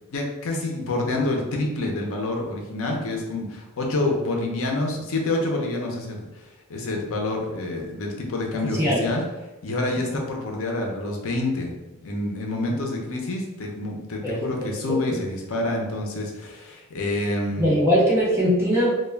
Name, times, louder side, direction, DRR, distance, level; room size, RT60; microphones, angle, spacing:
voice 1, 0.1-6.3 6.7-9.2 9.6-11.7 12.0-17.7, left 2 dB, 65° left, 1 dB, 0.5 m, -27 dB
voice 2, 8.7-9.0 14.2-14.7 17.6-18.9, equal, 10° right, -7 dB, 0.6 m, -21 dB
2.2 x 2.2 x 3.2 m, 1.1 s
head